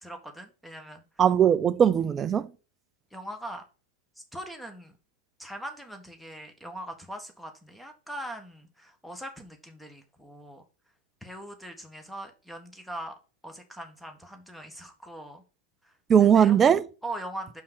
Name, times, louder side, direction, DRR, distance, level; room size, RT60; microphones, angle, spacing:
voice 1, 0.0-1.0 3.1-3.6 4.1-4.9 5.4-10.6 11.2-13.1 13.4-15.4 15.8-15.9 16.2-16.6 17.0-17.6, right 1 dB, ahead, 1.6 m, -41 dB
voice 2, 1.2-2.5 16.1-16.9, right 8 dB, 25° right, 0.6 m, -19 dB
5.9 x 5.6 x 6.1 m
figure-of-eight pair, 90°, 0 cm